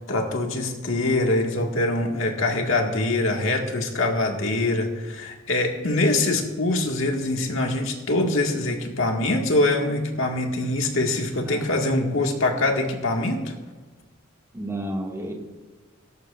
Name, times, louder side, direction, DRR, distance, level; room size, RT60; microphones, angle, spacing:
voice 1, 0.1-13.5, left 2 dB, 70° left, 1 dB, 1.9 m, -24 dB
voice 2, 11.4-11.8 14.5-15.3, right 1 dB, 15° right, -1 dB, 1.9 m, -32 dB
17.5 x 13.5 x 2.5 m, 1.3 s
head